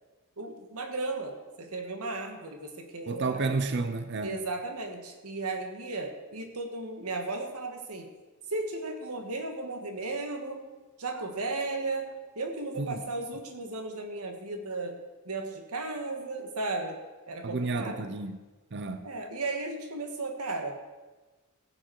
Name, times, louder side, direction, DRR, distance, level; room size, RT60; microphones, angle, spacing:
voice 1, 0.4-3.5 4.2-8.1 8.5-10.6 11.0-15.0 15.2-18.1 19.0-20.8, right 3 dB, 80° right, 1.6 m, -35 dB
voice 2, 3.1-4.4 12.8-13.0 17.4-18.4 18.7-19.1, right 3 dB, 50° right, 0.7 m, -31 dB
15.5 x 8.1 x 4.7 m
head